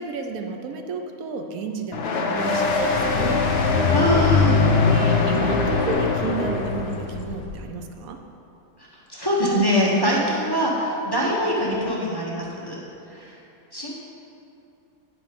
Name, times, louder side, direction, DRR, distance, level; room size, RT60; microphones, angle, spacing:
voice 1, 0.0-3.4 3.8-3.9 4.6-8.2, right 4 dB, 75° right, 4 dB, 1.1 m, -32 dB
sound 1, 1.9-7.0, left 3 dB, 50° left, 0.9 m, -24 dB
sound 2, 2.6-7.6, left 5 dB, 90° left, 1.2 m, -23 dB
voice 2, 3.9-4.6 8.8-12.8 13.1-13.3 13.7-13.9, equal, 20° left, -6 dB, 0.9 m, -23 dB
9.5 x 4.7 x 5.1 m, 2.8 s
omnidirectional pair, 1.5 m